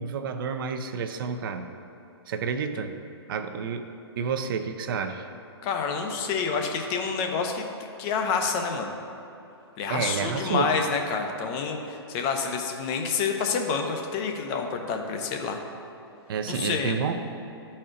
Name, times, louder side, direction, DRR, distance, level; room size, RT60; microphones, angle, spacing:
voice 1, 0.0-1.6 2.3-2.9 3.3-3.9 4.2-5.3 9.9-10.8 16.3-17.3, right 6 dB, 55° right, 7 dB, 0.6 m, -30 dB
voice 2, 5.6-7.7 8.0-8.9 9.8-15.6 16.5-17.0, left 5 dB, 35° left, 4 dB, 0.7 m, -28 dB
12.5 x 4.2 x 2.5 m, 2.8 s
hypercardioid pair, 130°, 14 cm